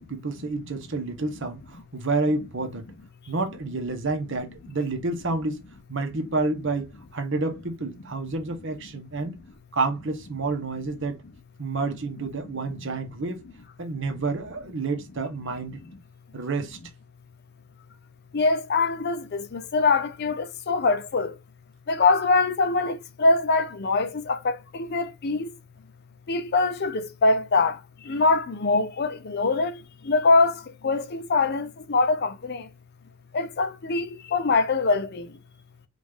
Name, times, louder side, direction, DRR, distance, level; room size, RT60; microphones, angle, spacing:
voice 1, 0.0-2.8 3.3-5.6 5.9-6.9 7.1-9.4 9.7-11.2 11.6-13.4 13.8-15.8 16.3-16.8, right 3 dB, 55° right, 1.0 m, -29 dB
voice 2, 18.3-21.4 21.9-25.5 26.3-32.7 33.3-35.4, left 3 dB, 45° left, 0.5 m, -23 dB
5.0 x 2.5 x 3.5 m
head